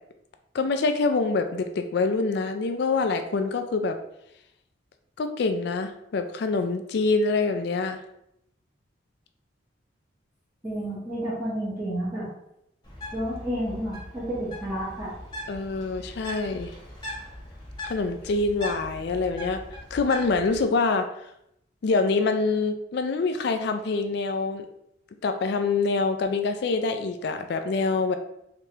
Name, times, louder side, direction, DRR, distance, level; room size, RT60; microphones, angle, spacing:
voice 1, 0.5-4.0 5.2-8.0 15.5-16.7 17.8-19.6 19.9-21.1 21.8-24.7 25.2-28.2, left 3 dB, 60° left, 7 dB, 0.4 m, -25 dB
voice 2, 10.6-12.3 13.1-15.1, equal, 10° right, -10 dB, 1.0 m, -30 dB
Bird, 12.8-20.6, equal, 20° left, 1.1 m, -40 dB
3.3 x 3.1 x 2.9 m, 0.80 s
head